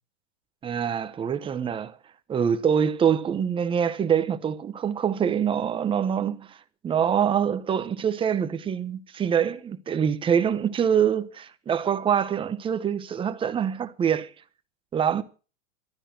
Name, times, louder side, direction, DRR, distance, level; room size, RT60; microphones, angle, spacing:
voice 1, 0.6-2.0 2.3-6.6 6.8-14.3 14.9-15.2, right 8 dB, 15° right, 1.0 m, -25 dB
14.5 x 13.0 x 6.0 m
supercardioid pair, 155°, 36 cm